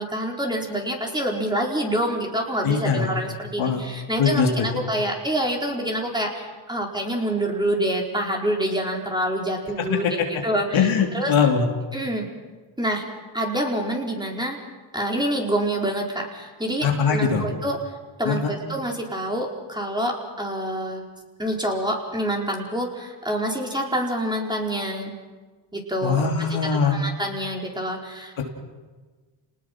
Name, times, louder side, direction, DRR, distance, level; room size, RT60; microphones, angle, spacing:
voice 1, 0.0-10.9 11.1-11.3 11.9-12.3 12.8-13.0 13.3-14.6 14.9-17.8 18.2-21.0 21.4-25.1 25.7-26.3 26.8-28.4, right 1 dB, 10° right, -1 dB, 4.6 m, -27 dB
voice 2, 2.6-3.1 3.6-3.8 4.2-4.7 10.2-10.3 10.7-11.7 16.8-17.4 18.2-18.5 26.0-27.0, left 6 dB, 70° left, 1 dB, 3.3 m, -21 dB
29.5 x 19.5 x 6.2 m, 1.4 s
cardioid pair, 80°, 50 cm